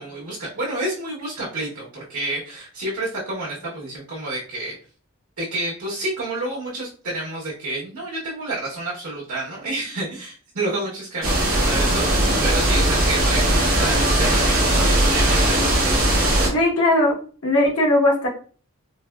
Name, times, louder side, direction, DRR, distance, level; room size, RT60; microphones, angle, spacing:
voice 1, 0.0-4.8 5.4-15.6, right 2 dB, 85° right, -6 dB, 1.0 m, -29 dB
sound 1, 11.2-16.5, right 1 dB, 40° right, 0.9 m, -19 dB
voice 2, 16.5-17.2 17.4-18.3, left 1 dB, 75° left, -3 dB, 1.1 m, -18 dB
3.9 x 2.2 x 2.2 m, 0.40 s
head